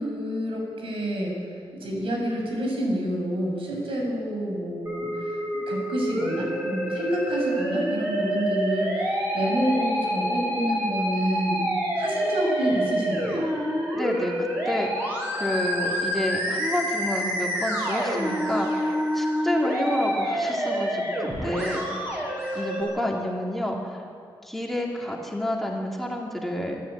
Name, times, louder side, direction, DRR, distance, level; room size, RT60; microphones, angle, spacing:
voice 1, 0.0-1.4 1.7-5.1 5.7-9.1 9.3-11.7 11.9-13.5, equal, 80° right, 0 dB, 6.7 m, -28 dB
Musical instrument, 4.9-22.8, equal, 25° right, 7.2 m, -27 dB
voice 2, 13.9-22.2 22.5-24.0 24.4-26.8, left 1 dB, ahead, -2 dB, 2.5 m, -29 dB
27.0 x 13.5 x 8.8 m, 2.4 s
wide cardioid pair, 170°, 9 cm